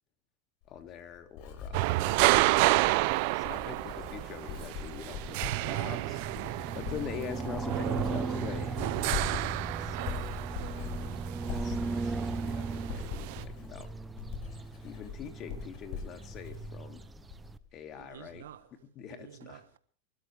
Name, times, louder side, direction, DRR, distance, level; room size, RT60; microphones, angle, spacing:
Writing, 0.6-17.7 18.0-18.4, left 6 dB, 55° left, 5.2 m, -42 dB
voice 1, 0.7-2.2 3.3-6.2 6.7-8.8 9.8-10.2 11.4-13.9 14.8-17.1 17.7-19.6, left 7 dB, 40° left, 2.8 m, -44 dB
sound 1, 1.7-13.4, right 21 dB, 60° right, 0.6 m, -31 dB
sound 2, 3.8-17.6, right 4 dB, 15° right, 0.8 m, -38 dB
voice 2, 9.9-10.2 10.6-11.1 18.0-18.7 19.1-19.8, right 11 dB, 85° right, 1.4 m, -50 dB
25.5 x 13.0 x 3.5 m
hypercardioid pair, 110°, 0 cm